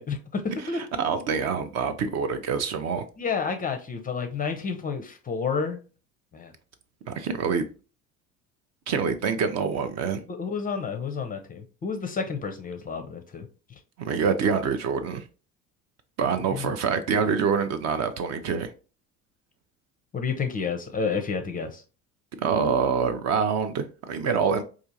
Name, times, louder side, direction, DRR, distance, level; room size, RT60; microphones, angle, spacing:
voice 1, 0.0-0.8 3.2-5.8 6.3-6.5 10.3-13.5 16.5-16.6 20.1-21.8, left 5 dB, 20° left, 0.5 m, -30 dB
voice 2, 0.6-3.1 7.1-7.6 8.9-10.2 14.0-15.3 16.2-18.7 22.4-24.6, right 6 dB, 40° right, 0.5 m, -26 dB
4.4 x 2.4 x 2.7 m
figure-of-eight pair, 65°, 43 cm